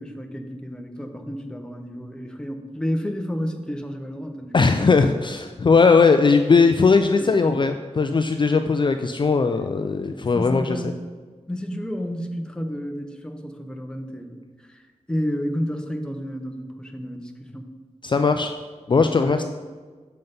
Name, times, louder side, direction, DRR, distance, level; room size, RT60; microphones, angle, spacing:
voice 1, 0.0-4.7 7.2-7.6 10.2-11.0 11.5-17.7 19.1-19.4, equal, 5° left, 4 dB, 0.9 m, -31 dB
voice 2, 4.5-10.8 18.0-18.5 18.9-19.4, left 4 dB, 40° left, 7 dB, 0.4 m, -19 dB
7.6 x 5.4 x 5.3 m, 1.4 s
wide cardioid pair, 100°, 12 cm